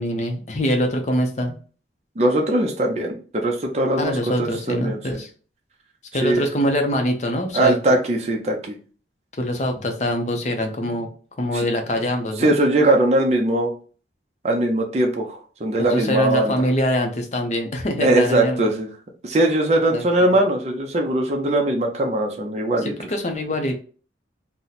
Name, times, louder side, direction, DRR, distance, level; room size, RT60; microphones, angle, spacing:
voice 1, 0.0-1.6 4.0-5.3 6.1-7.8 9.4-11.1 11.4-12.5 15.8-18.7 19.9-20.3 22.8-23.7, equal, 40° left, 4 dB, 0.5 m, -24 dB
voice 2, 2.2-5.0 6.2-6.4 7.5-8.8 11.5-11.7 12.4-13.7 14.4-16.5 18.0-18.9 19.2-22.9, right 1 dB, 35° right, 1 dB, 0.5 m, -20 dB
2.8 x 2.1 x 3.9 m, 0.40 s
head